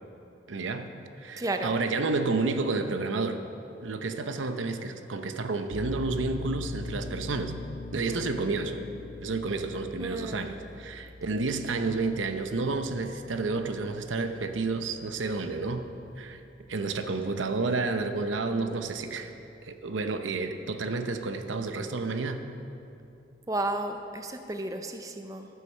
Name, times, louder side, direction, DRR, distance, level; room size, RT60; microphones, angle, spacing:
voice 1, 0.5-0.9 1.2-3.4 3.8-7.5 7.9-8.8 9.2-15.9 16.2-16.4 16.7-19.3 19.6-22.4, right 3 dB, 85° right, 7 dB, 0.8 m, -30 dB
voice 2, 1.4-1.8 8.1-8.2 10.0-10.6 23.5-25.5, right 2 dB, 20° right, 6 dB, 0.5 m, -33 dB
sound 1, 5.7-17.0, left 3 dB, 75° left, 0.7 m, -43 dB
14.0 x 6.6 x 6.5 m, 2.7 s
head